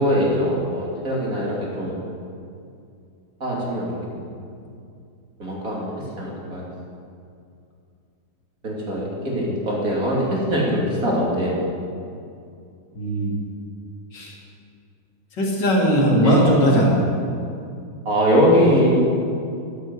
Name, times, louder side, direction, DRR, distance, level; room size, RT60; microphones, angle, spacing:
voice 1, 0.0-2.0 3.4-4.2 5.4-5.9 6.2-6.7 8.6-11.6 16.2-16.4 18.0-18.9, equal, 40° right, -4 dB, 3.3 m, -22 dB
voice 2, 13.0-13.3 14.1-14.3 15.3-17.1, equal, 60° left, -3 dB, 3.0 m, -18 dB
14.5 x 8.4 x 8.3 m, 2.5 s
omnidirectional pair, 2.2 m